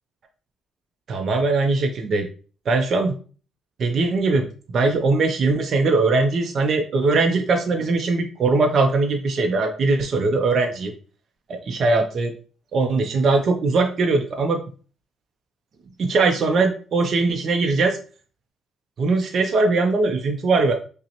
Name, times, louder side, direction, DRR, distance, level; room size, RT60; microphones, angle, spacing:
voice 1, 1.1-2.3 2.7-3.2 3.8-10.9 11.5-12.3 12.7-14.6 16.0-18.0 19.0-20.7, right 3 dB, 55° right, 4 dB, 0.5 m, -20 dB
5.1 x 2.0 x 2.9 m, 0.39 s
cardioid pair, 90°, 0 cm